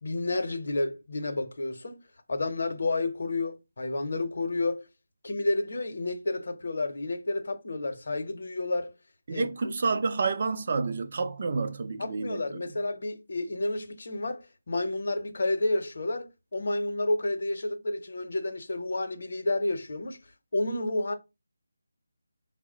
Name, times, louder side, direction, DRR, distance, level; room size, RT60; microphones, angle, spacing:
voice 1, 0.0-2.0 2.3-4.9 5.2-8.9 9.3-9.5 12.0-20.2 20.5-21.1, left 2 dB, 60° left, 0.7 m, -30 dB
voice 2, 9.3-12.6, right 4 dB, 45° right, 0.5 m, -29 dB
4.5 x 2.1 x 3.7 m
figure-of-eight pair, 160°, 0 cm